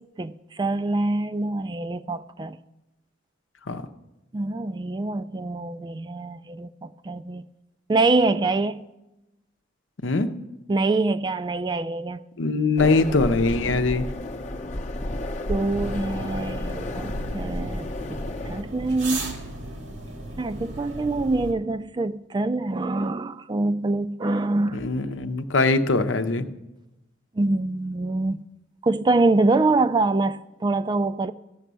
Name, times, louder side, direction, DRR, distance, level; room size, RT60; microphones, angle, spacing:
voice 1, 0.0-2.6 4.3-7.5 7.9-8.8 10.7-12.2 15.5-17.9 18.5-19.4 20.4-24.8 27.4-28.4 28.8-31.3, right 2 dB, 25° right, 0.3 m, -25 dB
voice 2, 10.0-10.3 12.4-14.1 24.7-26.5, left 3 dB, 80° left, 0.8 m, -22 dB
sound 1, 12.8-18.6, left 1 dB, 40° left, 0.8 m, -32 dB
sound 2, 15.6-21.5, right 1 dB, 85° right, 2.0 m, -36 dB
16.0 x 6.2 x 6.8 m
head